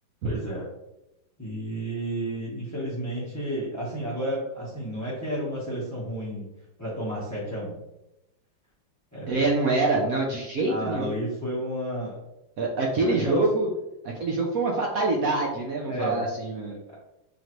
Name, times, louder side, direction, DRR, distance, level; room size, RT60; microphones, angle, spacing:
voice 1, 0.2-0.7 1.4-6.5 6.8-7.8 9.1-9.3 10.0-10.1 10.6-12.2 13.0-13.4 14.7-14.8 15.9-16.2 16.9-17.0, equal, 15° left, -9 dB, 0.5 m, -31 dB
voice 2, 9.3-11.1 12.6-13.7 14.0-16.8, right 3 dB, 75° right, -1 dB, 0.8 m, -25 dB
4.0 x 3.2 x 2.9 m, 0.91 s
omnidirectional pair, 2.2 m